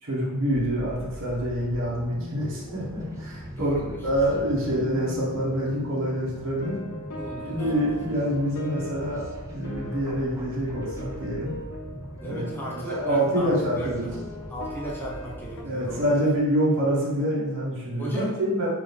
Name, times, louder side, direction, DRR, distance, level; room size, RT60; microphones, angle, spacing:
voice 1, 0.0-3.8 4.0-6.8 7.5-11.5 12.2-14.1 15.6-18.7, equal, 60° right, -6 dB, 1.1 m, -26 dB
sound 1, 0.5-16.5, equal, 15° right, 0.4 m, -40 dB
voice 2, 3.6-4.0 4.7-4.8 5.3-5.5 7.1-7.6 12.2-14.2 14.5-16.2 18.0-18.4, right 1 dB, 10° left, -6 dB, 0.7 m, -36 dB
sound 2, 6.4-15.6, equal, 75° left, 0.6 m, -40 dB
3.7 x 2.5 x 3.4 m, 1.2 s
head